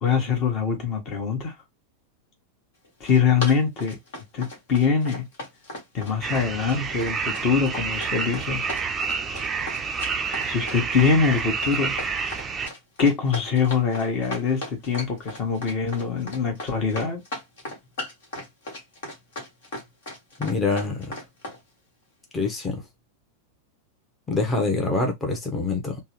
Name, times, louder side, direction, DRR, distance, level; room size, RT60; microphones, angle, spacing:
voice 1, 0.0-1.5 3.0-4.0 4.3-5.2 5.9-8.6 9.1-9.2 10.4-11.9 13.0-17.2, left 6 dB, 35° left, 1.3 m, -23 dB
Run, 2.8-21.6, left 1 dB, 60° left, 1.6 m, -36 dB
sound 1, 6.2-12.7, right 5 dB, 20° right, 0.5 m, -29 dB
voice 2, 20.4-21.2 22.3-22.8 24.3-26.0, left 3 dB, 15° left, 0.9 m, -25 dB
3.4 x 2.2 x 3.0 m
figure-of-eight pair, 90°, 0 cm